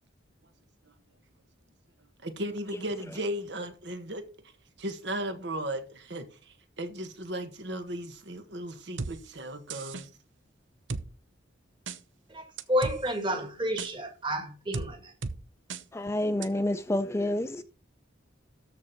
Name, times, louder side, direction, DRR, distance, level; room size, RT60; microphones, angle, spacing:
voice 1, 2.2-4.3 4.8-10.1, right 1 dB, 65° right, 1.6 m, -36 dB
sound 1, 9.0-9.1 9.7-10.0 10.9-11.0 11.9-12.0 12.6-13.0 13.8-13.9 14.7-14.9 15.2-15.4 15.7-15.8 16.4-16.5, right 4 dB, 80° right, 0.9 m, -34 dB
voice 2, 12.3-15.1, equal, 25° right, 2.0 m, -30 dB
voice 3, 15.9-17.6, left 1 dB, 15° left, 0.4 m, -28 dB
13.5 x 4.5 x 5.2 m
head